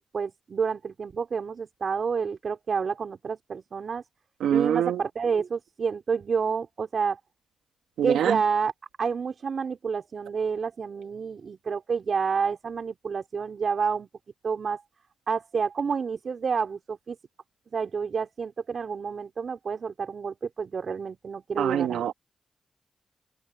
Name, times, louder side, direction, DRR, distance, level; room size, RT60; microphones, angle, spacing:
voice 1, 0.0-4.0 4.5-7.2 8.0-8.7 9.0-14.1 14.4-14.8 15.3-17.2 17.7-22.1, right 5 dB, 65° right, 4.4 m, -29 dB
voice 2, 4.4-5.0 8.0-8.4 21.6-22.1, right 10 dB, 90° right, 1.6 m, -25 dB
supercardioid pair, 40°, 0 cm